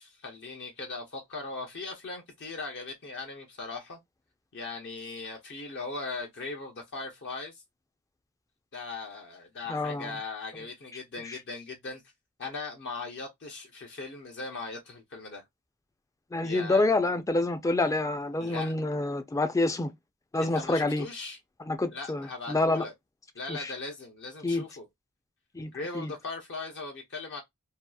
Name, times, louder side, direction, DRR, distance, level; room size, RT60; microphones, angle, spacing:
voice 1, 0.0-4.0 4.5-7.6 8.7-12.0 12.4-15.4 16.4-16.9 18.4-18.7 20.4-21.4 21.9-22.9 23.3-24.9 25.7-27.4, left 3 dB, 55° left, 0.6 m, -39 dB
voice 2, 9.7-10.1 16.3-19.9 20.3-21.0 21.7-22.8 23.5-23.7 24.4-24.6 25.5-25.7 26.0-26.1, left 2 dB, 15° left, 0.3 m, -27 dB
2.7 x 2.3 x 2.2 m
head